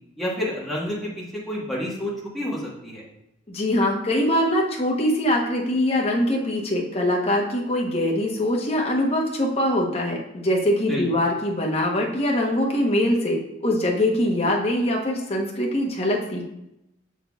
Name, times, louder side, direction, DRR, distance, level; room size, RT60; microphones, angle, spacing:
voice 1, 0.2-3.0 10.8-11.1, left 1 dB, ahead, -6 dB, 1.4 m, -29 dB
voice 2, 3.5-16.4, left 1 dB, 30° left, -1 dB, 1.0 m, -23 dB
6.9 x 5.8 x 2.4 m, 0.87 s
head